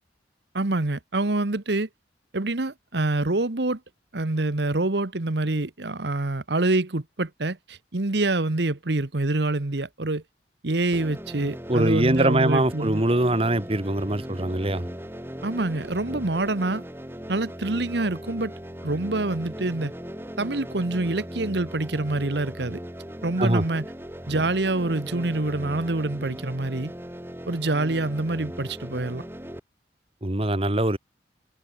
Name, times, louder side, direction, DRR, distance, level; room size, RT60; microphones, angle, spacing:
voice 1, 0.5-1.9 2.3-3.8 4.1-10.2 10.6-13.0 15.4-16.8 17.3-18.5 18.8-19.9 20.4-22.8 23.2-23.9 24.3-26.9 27.5-29.2, right 2 dB, 70° right, 1.3 m, -26 dB
sound 1, 10.9-29.6, equal, 15° right, 4.5 m, -38 dB
voice 2, 11.7-14.9 23.4-23.6 30.2-31.0, right 1 dB, 30° right, 1.9 m, -23 dB
head